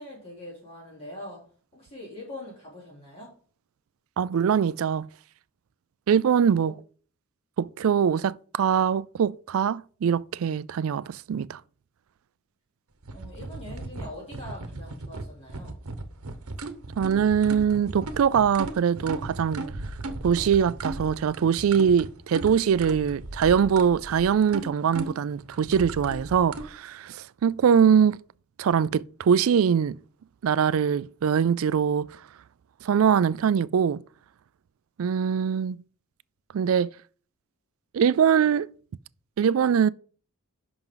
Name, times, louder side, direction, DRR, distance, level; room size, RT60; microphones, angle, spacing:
voice 1, 0.0-1.4 1.7-3.3 6.6-6.7 13.1-15.8, left 1 dB, 25° left, 3.5 m, -42 dB
voice 2, 4.2-5.1 6.1-6.7 7.6-11.6 17.0-19.7 20.2-28.2 28.6-30.0 30.4-32.1 32.8-34.0 35.0-35.8 36.5-36.9 37.9-38.7 39.4-39.9, right 7 dB, 70° right, 0.3 m, -22 dB
sound 1, 13.0-26.7, right 2 dB, 90° right, 1.0 m, -37 dB
10.5 x 6.0 x 3.9 m
head